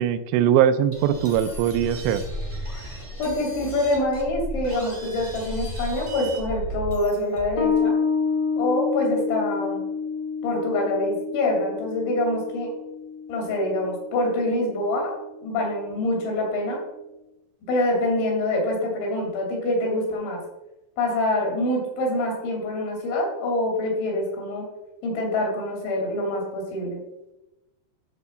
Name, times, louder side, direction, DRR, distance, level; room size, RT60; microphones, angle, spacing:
voice 1, 0.0-2.2, right 9 dB, 85° right, 11 dB, 2.7 m, -21 dB
sound 1, 0.9-7.7, right 1 dB, 25° right, 0.4 m, -34 dB
voice 2, 3.2-8.0 8.6-9.9 10.4-12.7 13.3-16.8 17.7-20.4 21.0-24.7 25.0-27.0, left 1 dB, 85° left, 0 dB, 5.2 m, -25 dB
Bass guitar, 7.6-14.7, left 5 dB, 70° left, 0.9 m, -28 dB
12.0 x 4.0 x 6.8 m, 0.98 s
omnidirectional pair, 5.2 m